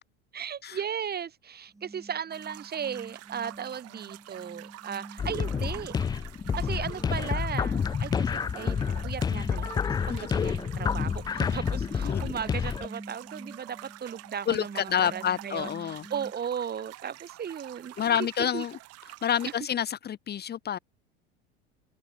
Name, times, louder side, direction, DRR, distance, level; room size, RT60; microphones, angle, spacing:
voice 1, 0.3-5.9 6.6-18.6, right 8 dB, 30° right, 4.5 m, -36 dB
sound 1, 1.7-16.3, right 2 dB, 10° right, 6.5 m, -47 dB
sound 2, 2.3-19.6, right 17 dB, 50° right, 5.9 m, -47 dB
sound 3, 5.2-12.9, left 6 dB, 15° left, 0.4 m, -29 dB
voice 2, 10.1-10.5 12.0-12.3 14.5-16.0 18.0-18.8 19.2-20.8, left 9 dB, 30° left, 1.6 m, -29 dB
figure-of-eight pair, 75°, 33 cm